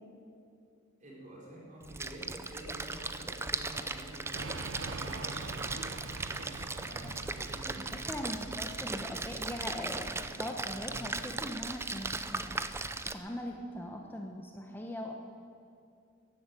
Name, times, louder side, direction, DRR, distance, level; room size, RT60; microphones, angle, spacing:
voice 1, 1.0-5.8 6.4-8.0, right 1 dB, 40° right, -3 dB, 4.3 m, -48 dB
Splash splatter, 1.8-13.1, right 3 dB, 15° right, 0.6 m, -38 dB
sound 1, 4.3-10.0, right 3 dB, 65° right, 0.9 m, -44 dB
voice 2, 8.1-12.7 13.1-15.1, left 1 dB, 10° left, 2 dB, 1.0 m, -40 dB
14.5 x 11.0 x 9.1 m, 2.5 s
head